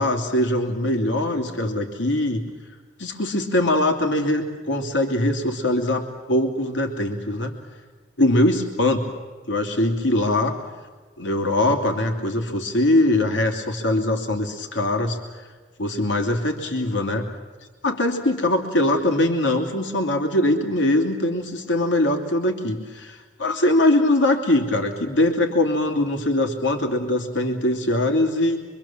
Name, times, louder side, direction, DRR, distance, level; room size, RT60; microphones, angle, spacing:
voice 1, 0.0-2.4 3.0-7.6 8.2-9.0 9.5-10.5 11.2-15.2 15.8-17.3 17.8-28.6, left 1 dB, 80° left, 2 dB, 3.0 m, -22 dB
25.5 x 24.5 x 7.4 m, 1.4 s
head